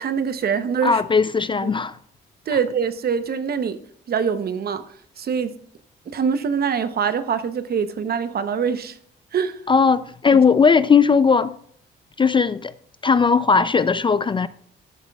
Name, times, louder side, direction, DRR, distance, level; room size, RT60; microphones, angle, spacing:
voice 1, 0.0-1.0 2.5-3.8 4.1-4.8 5.2-5.5 6.1-9.0 9.3-9.6 10.3-10.4, right 6 dB, 50° right, 0.8 m, -24 dB
voice 2, 0.8-2.0 2.5-2.6 9.7-11.6 12.2-12.7 13.0-14.5, left 5 dB, 25° left, 0.4 m, -18 dB
13.5 x 11.0 x 2.4 m
cardioid pair, 90°, 20 cm